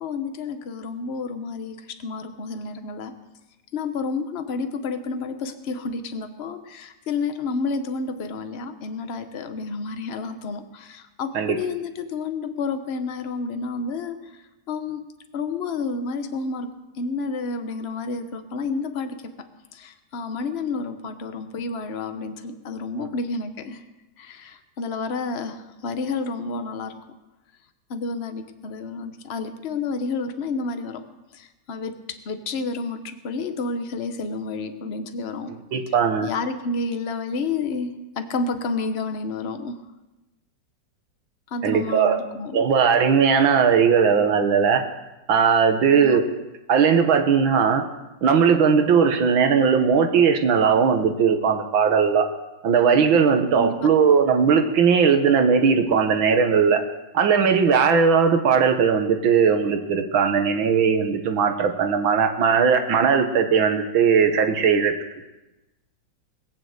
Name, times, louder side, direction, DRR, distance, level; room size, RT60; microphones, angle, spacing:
voice 1, 0.0-3.1 3.7-14.3 14.7-15.0 15.3-16.7 17.0-19.3 19.7-23.8 24.2-27.0 27.9-31.0 31.3-32.0 32.3-35.6 36.2-39.8 41.5-42.6 46.0-46.2 53.5-53.9, left 4 dB, 40° left, 8 dB, 1.0 m, -30 dB
voice 2, 35.7-36.3 41.6-42.2 42.5-44.8 45.3-46.3 46.7-47.8 48.2-52.3 52.6-56.8 57.1-64.9, right 6 dB, 85° right, 6 dB, 2.1 m, -18 dB
20.0 x 7.0 x 8.0 m, 1.0 s
omnidirectional pair, 2.1 m